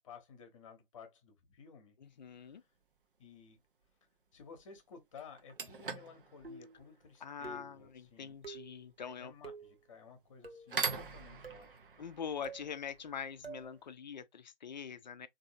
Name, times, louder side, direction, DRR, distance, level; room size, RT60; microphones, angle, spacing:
voice 1, 0.0-2.0 2.4-2.6 3.2-3.6 4.3-8.4 9.0-11.8, left 6 dB, 35° left, 0.9 m, -55 dB
voice 2, 2.0-2.6 7.2-9.3 12.0-15.3, left 7 dB, 50° left, 0.5 m, -44 dB
sound 1, 2.2-2.5 4.6-4.7 5.2-13.9, right 5 dB, 60° right, 0.8 m, -44 dB
sound 2, 6.4-6.8 7.4-7.8 8.4-8.8 9.4-9.7 10.4-10.8 11.4-11.7 12.4-12.7 13.4-13.7, right 4 dB, 90° right, 0.9 m, -48 dB
3.6 x 2.6 x 2.6 m
figure-of-eight pair, 135°, 29 cm